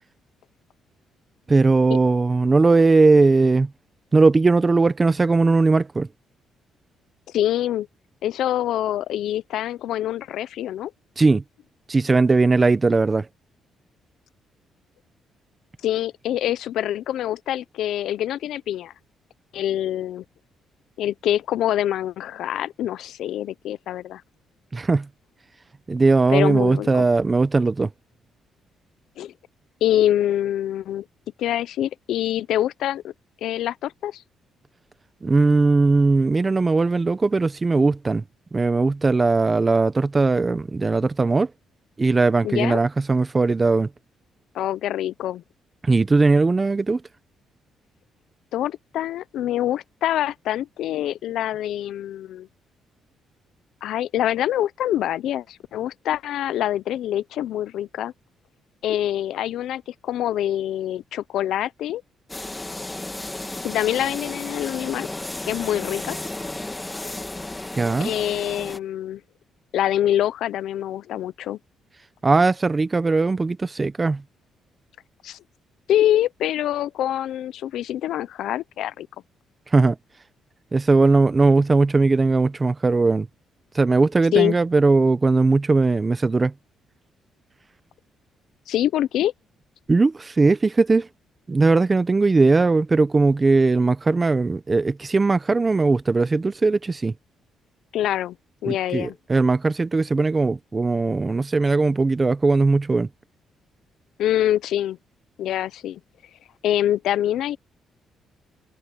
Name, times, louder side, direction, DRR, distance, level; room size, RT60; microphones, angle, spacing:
voice 1, 1.5-3.7 4.1-6.1 11.2-11.4 11.9-13.3 24.7-25.1 25.9-27.9 35.2-38.2 38.5-41.5 42.0-43.9 45.8-47.0 67.7-68.1 72.2-74.2 79.7-80.0 80.7-83.3 83.7-86.5 89.9-91.1 91.5-97.1 98.6-103.1, right 3 dB, 25° right, 1.0 m, -19 dB
voice 2, 7.3-7.9 8.2-10.9 15.8-18.9 19.5-20.2 21.0-24.2 26.3-27.1 29.2-29.3 29.8-31.0 31.4-33.1 33.4-34.2 42.4-42.8 44.5-45.4 48.5-52.5 53.8-58.1 58.8-62.0 63.6-65.1 65.4-66.2 68.0-69.2 69.7-71.6 75.2-75.4 75.9-79.1 84.3-84.6 88.7-89.3 97.9-98.4 98.6-99.1 104.2-105.0 105.4-106.0 106.6-107.6, left 12 dB, 80° left, 0.7 m, -25 dB
sound 1, 62.3-68.8, left 2 dB, 15° left, 2.0 m, -33 dB
cardioid pair, 90°, 0 cm